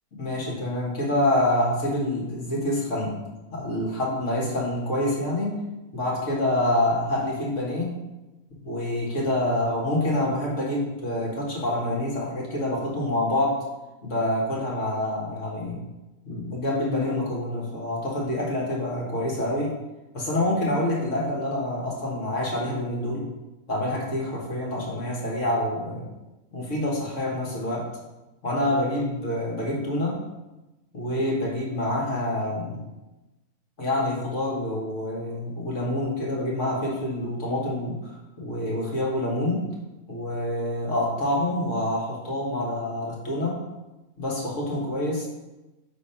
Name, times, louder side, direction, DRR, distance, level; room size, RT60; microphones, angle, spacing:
voice 1, 0.1-3.2 3.5-5.6 5.9-8.0 8.5-13.6 14.0-15.8 16.3-19.8 20.1-23.3 23.7-26.1 26.5-27.9 28.4-30.2 30.9-32.8 33.8-39.7 40.1-43.6 44.2-45.3, left 1 dB, 50° left, -4 dB, 1.8 m, -27 dB
5.1 x 3.9 x 5.6 m, 1.0 s
omnidirectional pair, 1.6 m